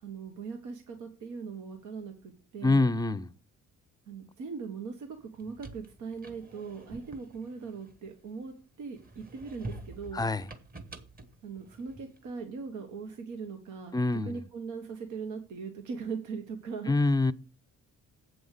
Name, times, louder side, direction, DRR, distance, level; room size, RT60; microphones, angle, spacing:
voice 1, 0.0-2.9 4.1-10.2 11.4-17.0, right 5 dB, 85° right, 1.3 m, -40 dB
voice 2, 2.6-3.3 10.1-10.5 13.9-14.4 16.9-17.3, left 3 dB, 15° left, 0.5 m, -25 dB
sound 1, 5.2-8.5 9.0-12.3, right 2 dB, 30° right, 1.5 m, -47 dB
7.8 x 5.4 x 6.5 m
cardioid pair, 90°, 30 cm